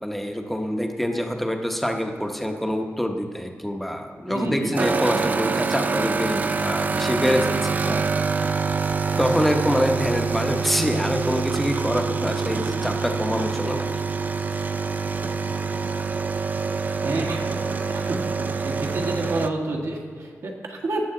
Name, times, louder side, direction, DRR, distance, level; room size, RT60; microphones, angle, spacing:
voice 1, 0.0-8.0 9.2-13.9, equal, 5° left, 3 dB, 0.8 m, -25 dB
voice 2, 4.3-4.7 16.7-17.4 17.9-18.2 18.5-21.0, right 2 dB, 65° right, 1 dB, 1.5 m, -29 dB
sound 1, 4.8-19.5, right 4 dB, 30° right, 0.3 m, -25 dB
19.0 x 6.9 x 3.8 m, 2.1 s
wide cardioid pair, 165°, 5 cm